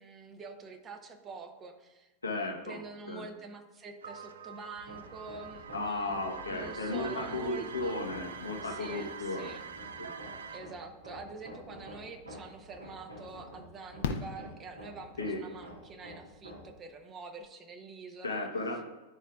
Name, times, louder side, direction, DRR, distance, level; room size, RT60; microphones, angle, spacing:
voice 1, 0.0-6.2 6.5-8.1 8.6-9.7 10.5-18.5, right 4 dB, 25° right, 6 dB, 0.8 m, -46 dB
voice 2, 2.2-2.8 3.1-3.2 5.7-9.5 10.0-10.1 15.2-15.4 18.2-18.8, left 2 dB, 80° left, 1 dB, 1.0 m, -35 dB
sound 1, 4.0-10.6, right 6 dB, 65° right, 0.4 m, -45 dB
Hammer, 4.8-16.8, equal, 80° right, 1.3 m, -49 dB
Fireworks, 12.3-12.4 14.0-15.3 17.1-17.2 17.4-17.5, left 6 dB, 55° left, 0.6 m, -37 dB
10.5 x 4.5 x 2.4 m, 1.1 s
figure-of-eight pair, 90°, 0 cm